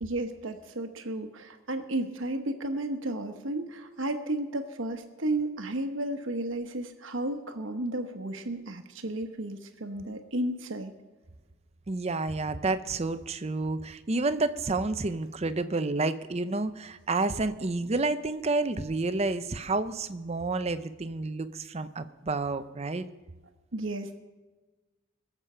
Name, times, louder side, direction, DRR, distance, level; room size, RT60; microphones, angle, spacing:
voice 1, 0.0-10.9 23.7-24.2, right 1 dB, 60° right, 7 dB, 1.1 m, -33 dB
voice 2, 11.9-23.1, right 3 dB, 30° right, 12 dB, 0.6 m, -30 dB
22.0 x 7.4 x 5.6 m, 1.2 s
head